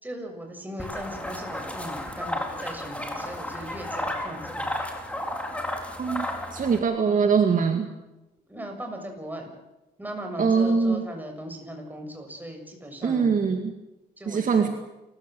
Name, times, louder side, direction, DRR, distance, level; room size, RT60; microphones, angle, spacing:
voice 1, 0.0-4.7 8.5-9.5 10.0-13.3 14.2-14.7, right 1 dB, 10° right, 3 dB, 6.9 m, -38 dB
sound 1, 0.8-6.8, left 1 dB, 5° left, 3.9 m, -33 dB
voice 2, 6.0-7.9 10.4-11.1 13.0-13.7 14.3-14.7, right 5 dB, 50° right, 5 dB, 2.1 m, -23 dB
29.0 x 15.0 x 7.7 m, 0.98 s
cardioid pair, 95°, 17 cm